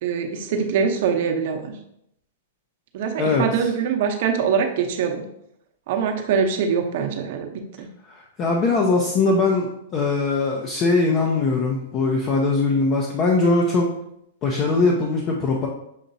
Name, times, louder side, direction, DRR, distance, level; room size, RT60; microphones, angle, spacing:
voice 1, 0.0-1.7 2.9-5.2 5.9-7.5 7.8-7.9, right 6 dB, 55° right, 4 dB, 0.8 m, -23 dB
voice 2, 8.0-13.9 14.4-15.7, left 3 dB, 30° left, -1 dB, 0.6 m, -21 dB
6.5 x 2.9 x 2.7 m, 0.76 s
hypercardioid pair, 135°, 0 cm